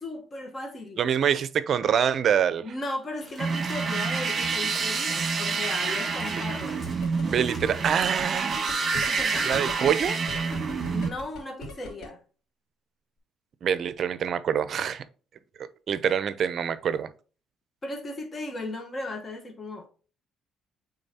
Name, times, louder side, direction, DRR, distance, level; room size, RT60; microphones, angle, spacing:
voice 1, 0.0-1.0 2.6-6.8 8.9-9.7 10.9-12.2 17.8-19.9, left 2 dB, 30° left, 1.2 m, -36 dB
voice 2, 1.0-2.6 7.2-8.6 9.4-10.2 13.6-15.0 15.9-17.1, right 8 dB, 50° right, 0.5 m, -25 dB
Walk footsteps / Splash splatter, 3.2-10.6, equal, 10° left, 3.1 m, -47 dB
sound 1, 3.4-11.1, right 5 dB, 35° right, 1.4 m, -28 dB
sound 2, 6.9-12.1, left 2 dB, 70° left, 2.8 m, -38 dB
8.8 x 3.8 x 2.8 m
cardioid pair, 110°, 0 cm